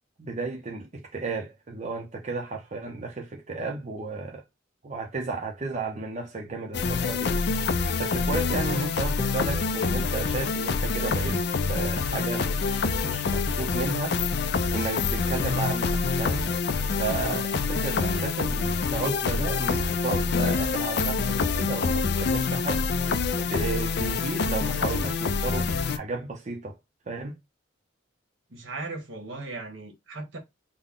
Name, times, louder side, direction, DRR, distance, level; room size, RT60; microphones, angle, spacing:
voice 1, 0.2-4.4 4.8-7.4 8.0-11.4 11.7-14.2 14.7-16.5 17.0-26.7 27.1-27.4, right 3 dB, 40° right, 0.6 m, -33 dB
sound 1, 6.7-26.0, left 4 dB, 60° left, 0.4 m, -26 dB
voice 2, 28.5-30.4, right 2 dB, 75° right, 1.2 m, -37 dB
3.7 x 2.1 x 3.6 m
head